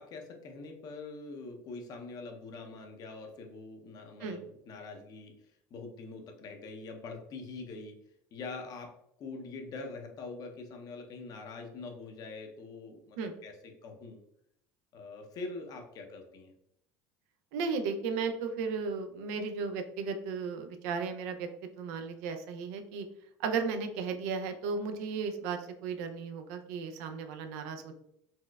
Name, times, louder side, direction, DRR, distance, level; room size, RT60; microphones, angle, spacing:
voice 1, 0.0-5.3 5.7-8.0 8.3-8.9 9.2-14.2 14.9-16.5, left 3 dB, 45° left, 4 dB, 0.6 m, -44 dB
voice 2, 17.5-21.5 21.8-23.1 23.4-27.9, right 5 dB, 80° right, 6 dB, 0.4 m, -35 dB
4.2 x 2.1 x 2.3 m, 0.75 s
supercardioid pair, 110°, 9 cm